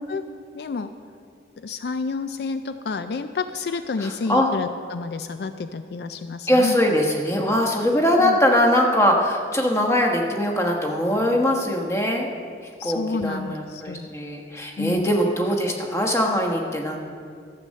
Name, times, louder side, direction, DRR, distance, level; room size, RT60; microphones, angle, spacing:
voice 1, 0.5-0.9 1.6-6.8 8.2-8.4 12.8-14.1 14.8-15.1, left 4 dB, 65° left, 10 dB, 0.4 m, -29 dB
voice 2, 4.0-4.5 6.5-12.3 12.8-17.0, equal, 15° left, 1 dB, 1.2 m, -21 dB
13.0 x 7.6 x 6.5 m, 2.3 s
head